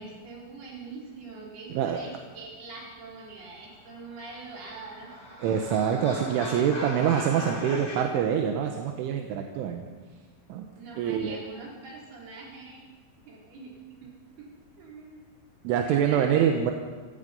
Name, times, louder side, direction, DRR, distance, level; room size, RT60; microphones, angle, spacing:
voice 1, 0.0-5.1 10.8-12.9 13.2-15.3 15.8-16.7, right 3 dB, 55° right, -3 dB, 6.3 m, -43 dB
sound 1, 4.1-8.0, left 1 dB, 40° left, 8.8 m, -39 dB
voice 2, 5.4-9.9 10.5-10.7 11.0-11.4 15.7-16.7, right 8 dB, 80° right, 3 dB, 3.6 m, -25 dB
29.0 x 16.5 x 5.5 m, 1.4 s
omnidirectional pair, 5.6 m